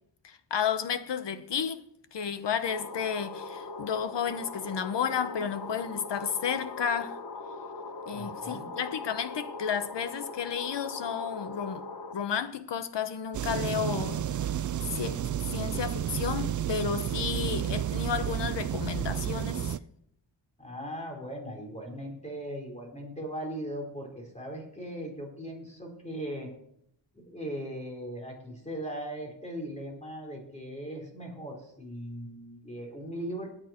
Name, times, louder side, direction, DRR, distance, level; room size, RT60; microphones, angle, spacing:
voice 1, 0.2-7.2 8.1-11.8 12.1-14.5 14.9-15.2 15.5-19.8, left 7 dB, 65° left, 1.1 m, -32 dB
sound 1, 2.7-12.1, left 3 dB, 50° left, 1.3 m, -40 dB
voice 2, 8.1-8.7 20.6-26.5 27.1-33.5, equal, 15° left, 4.5 m, -39 dB
sound 2, 13.3-19.8, right 10 dB, 45° right, 0.4 m, -31 dB
18.0 x 9.3 x 4.5 m
wide cardioid pair, 110°, 45 cm